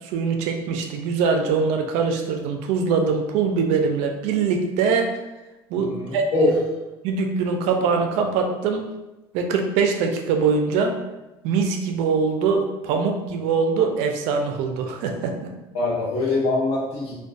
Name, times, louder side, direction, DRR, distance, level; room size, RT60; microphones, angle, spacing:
voice 1, 0.0-5.2 5.7-6.5 7.0-8.9 9.3-11.0 11.4-15.5, right 5 dB, 80° right, 4 dB, 0.4 m, -23 dB
voice 2, 5.7-6.5 15.7-17.1, left 2 dB, 65° left, -5 dB, 1.0 m, -23 dB
2.3 x 2.2 x 2.5 m, 1.0 s
cardioid pair, 125°, 11 cm